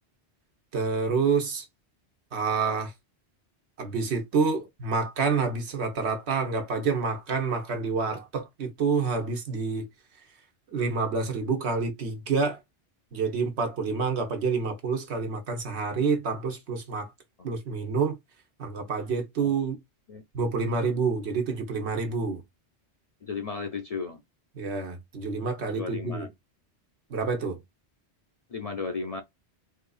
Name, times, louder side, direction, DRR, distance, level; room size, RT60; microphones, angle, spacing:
voice 1, 0.7-1.6 2.3-2.9 3.8-9.9 10.7-12.6 13.1-17.1 17.4-18.2 18.6-19.8 20.3-22.4 24.6-26.3 27.1-27.6, right 4 dB, 75° right, 1.2 m, -28 dB
voice 2, 23.2-24.2 25.6-26.3 28.5-29.2, left 4 dB, 50° left, 0.4 m, -34 dB
4.0 x 2.6 x 2.3 m
omnidirectional pair, 1.1 m